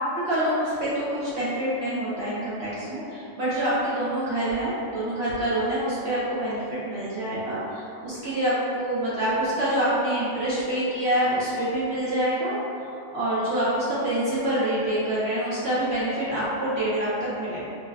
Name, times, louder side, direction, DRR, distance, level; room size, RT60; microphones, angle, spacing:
voice 1, 0.2-17.6, right 1 dB, 60° right, -10 dB, 0.9 m, -26 dB
3.7 x 2.7 x 2.3 m, 2.5 s
omnidirectional pair, 1.3 m